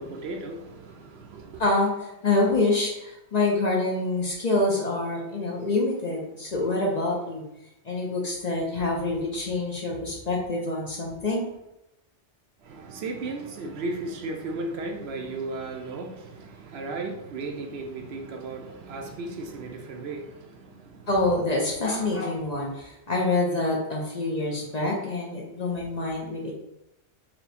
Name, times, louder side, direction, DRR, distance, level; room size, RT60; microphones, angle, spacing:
voice 1, 0.0-1.6 12.6-21.1, right 2 dB, 70° right, 3 dB, 0.8 m, -35 dB
voice 2, 1.6-7.4 7.8-11.5 21.1-26.5, left 2 dB, 40° left, -2 dB, 0.7 m, -26 dB
4.3 x 2.2 x 4.1 m, 0.86 s
omnidirectional pair, 1.2 m